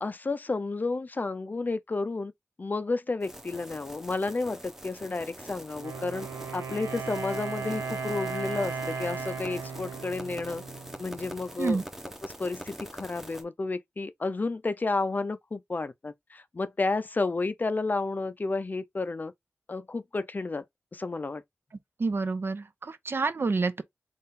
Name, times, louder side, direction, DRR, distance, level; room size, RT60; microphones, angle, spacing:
voice 1, 0.0-2.3 2.6-6.3 6.5-10.6 11.0-11.8 12.2-19.3 19.7-20.6 20.9-21.4, left 3 dB, 40° left, 0.4 m, -31 dB
sound 1, 3.2-13.4, equal, 5° right, 0.8 m, -44 dB
Wind instrument woodwind instrument, 5.7-11.5, right 5 dB, 85° right, 0.7 m, -36 dB
voice 2, 22.0-23.8, right 3 dB, 55° right, 0.5 m, -28 dB
3.7 x 2.5 x 4.1 m
wide cardioid pair, 75°, 5 cm